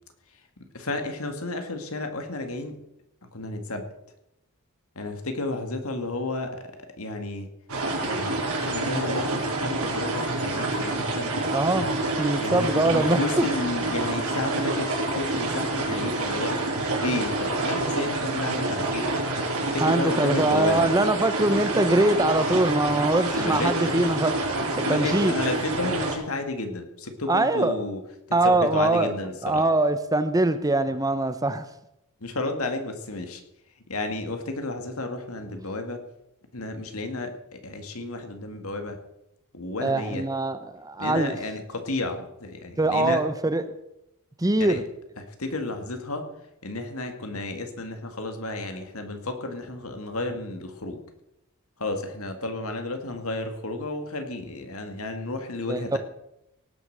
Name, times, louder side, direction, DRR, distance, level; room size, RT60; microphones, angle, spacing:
voice 1, 0.7-2.8 3.3-3.9 5.0-7.5 7.9-11.4 12.4-16.6 17.0-19.1 19.6-20.9 23.3-23.9 24.8-28.0 28.3-29.7 32.2-33.4 33.9-36.0 36.5-39.0 39.5-40.3 41.0-43.2 44.6-44.8 45.2-46.3 46.6-51.0 51.8-56.0, left 2 dB, 70° left, 2.1 m, -32 dB
sound 1, 7.7-26.1, right 2 dB, 75° right, 4.6 m, -27 dB
voice 2, 11.5-11.9 12.2-13.2 19.8-24.3 24.8-25.3 27.3-27.7 28.3-29.1 29.4-31.7 39.8-41.4 42.8-43.7 44.4-44.8 55.7-56.0, right 2 dB, 15° right, 0.7 m, -23 dB
18.0 x 8.0 x 6.6 m
head